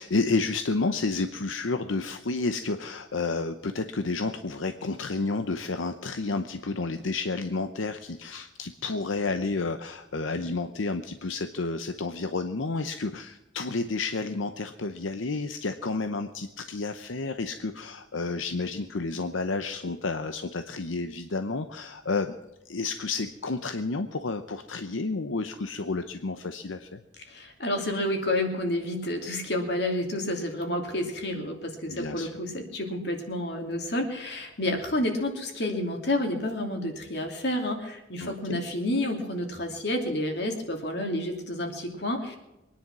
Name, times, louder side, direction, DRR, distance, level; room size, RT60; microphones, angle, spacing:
voice 1, 0.0-22.4 22.6-27.0 31.9-32.3 38.2-38.6, left 3 dB, 85° left, 8 dB, 0.8 m, -30 dB
voice 2, 27.3-42.4, left 1 dB, 60° left, 3 dB, 2.8 m, -30 dB
23.0 x 10.0 x 6.1 m, 1.0 s
head